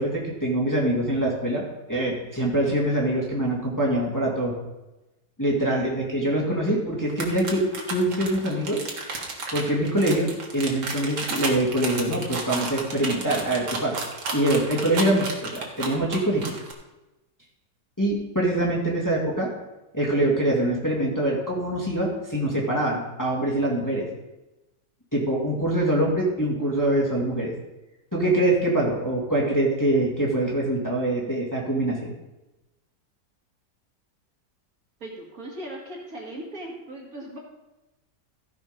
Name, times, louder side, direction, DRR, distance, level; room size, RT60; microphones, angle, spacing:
voice 1, 0.0-1.6 1.9-4.5 5.4-7.6 7.9-8.8 9.5-14.0 14.3-16.5 18.0-19.5 19.9-24.1 25.1-27.5 28.1-32.1, right 1 dB, 10° left, -4 dB, 2.0 m, -24 dB
sound 1, 7.1-16.7, right 3 dB, 70° right, 2.2 m, -32 dB
voice 2, 35.0-37.4, right 1 dB, 55° right, -2 dB, 2.4 m, -39 dB
15.0 x 5.3 x 5.1 m, 1.0 s
omnidirectional pair, 1.9 m